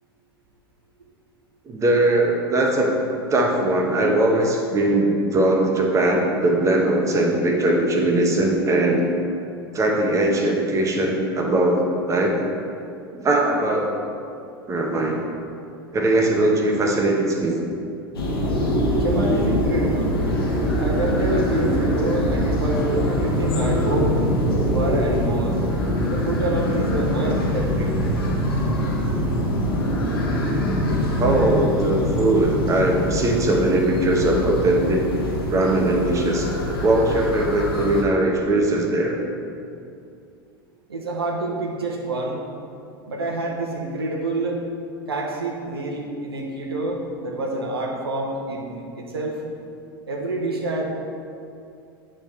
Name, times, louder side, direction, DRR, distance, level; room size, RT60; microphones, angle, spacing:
voice 1, 1.7-3.0 3.3-9.0 9.7-12.4 13.1-13.9 14.7-15.2 15.9-17.6 31.2-35.1 35.5-36.5 36.8-39.2, right 1 dB, 25° right, 0 dB, 1.1 m, -20 dB
sound 1, 18.1-38.0, equal, 80° left, 1.2 m, -23 dB
voice 2, 19.0-20.2 20.8-24.3 24.7-25.6 26.0-27.9 40.9-42.5 43.1-44.6 45.1-49.4 50.1-50.8, right 2 dB, 80° right, -1 dB, 0.9 m, -27 dB
8.7 x 3.8 x 4.4 m, 2.5 s
figure-of-eight pair, 80°, 13 cm